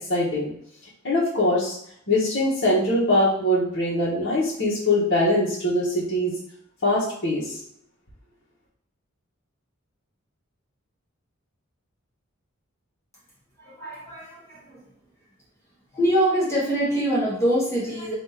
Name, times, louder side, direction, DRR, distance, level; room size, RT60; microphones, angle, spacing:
voice 1, 0.1-0.5 1.0-1.7 2.1-6.3 6.8-7.6, left 1 dB, 60° left, -9 dB, 1.1 m, -22 dB
voice 2, 13.6-14.8 15.9-18.1, right 1 dB, 15° left, -7 dB, 1.5 m, -24 dB
3.6 x 2.6 x 4.2 m, 0.70 s
head